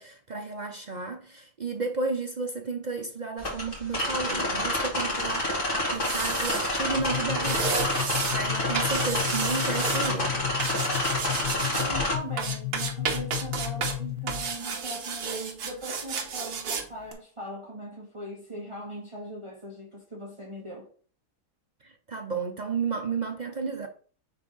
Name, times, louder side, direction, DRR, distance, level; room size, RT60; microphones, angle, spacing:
voice 1, 0.0-7.8 8.3-10.5 21.8-23.9, right 4 dB, 55° right, 0.5 m, -32 dB
sound 1, 3.4-12.2, left 1 dB, 35° left, 2.2 m, -28 dB
sound 2, 5.9-6.7 7.4-8.4 8.8-10.1 10.6-11.9 12.4-14.0 14.3-16.8 17.1-17.2, right 5 dB, 75° right, 1.6 m, -32 dB
sound 3, 7.0-14.5, left 19 dB, 65° left, 0.8 m, -34 dB
voice 2, 11.6-20.9, right 1 dB, 20° right, 1.4 m, -40 dB
9.5 x 3.6 x 3.9 m
omnidirectional pair, 1.7 m